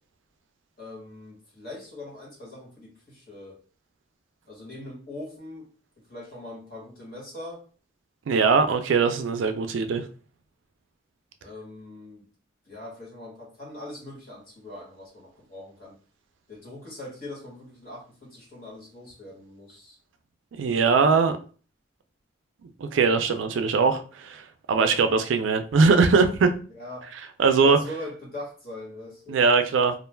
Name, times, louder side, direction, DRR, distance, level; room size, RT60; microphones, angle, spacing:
voice 1, 0.8-3.6 4.5-5.7 6.1-7.6 11.4-12.3 12.6-16.0 16.5-20.0 26.7-27.1 27.6-29.4, left 1 dB, 50° left, 1.3 m, -41 dB
voice 2, 8.3-10.0 20.6-21.4 22.8-26.5 27.4-27.8 29.3-29.9, right 4 dB, 75° right, 0.4 m, -21 dB
2.4 x 2.2 x 3.2 m
head